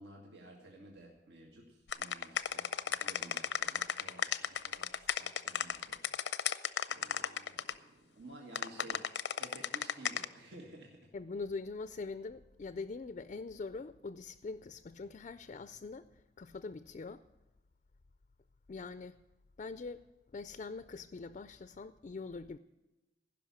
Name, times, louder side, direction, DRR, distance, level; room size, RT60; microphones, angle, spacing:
voice 1, 0.0-11.1, right 1 dB, 80° right, 1.8 m, -54 dB
sound 1, 1.9-7.7 8.5-10.2, left 8 dB, 90° left, 0.6 m, -34 dB
voice 2, 11.1-16.1 16.4-17.2 18.7-19.2 19.6-20.0 20.3-22.6, left 4 dB, 40° left, 0.4 m, -43 dB
15.5 x 6.0 x 8.3 m
head